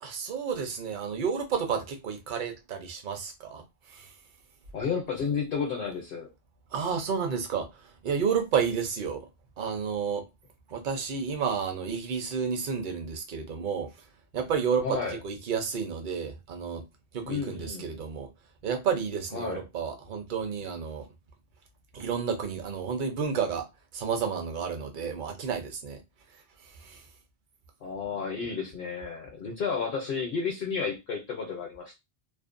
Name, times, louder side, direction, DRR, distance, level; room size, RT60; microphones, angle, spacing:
voice 1, 0.0-4.1 6.7-9.3 9.6-10.2 10.7-13.9 14.3-15.0 15.2-16.8 17.1-18.3 18.6-21.1 21.9-23.7 23.9-26.0 26.6-27.0, right 6 dB, 55° right, 0.7 m, -31 dB
voice 2, 4.7-6.3 14.8-15.2 17.2-17.9 19.3-19.6 27.8-32.0, left 5 dB, 60° left, 0.8 m, -32 dB
2.5 x 2.1 x 2.5 m
omnidirectional pair, 1.1 m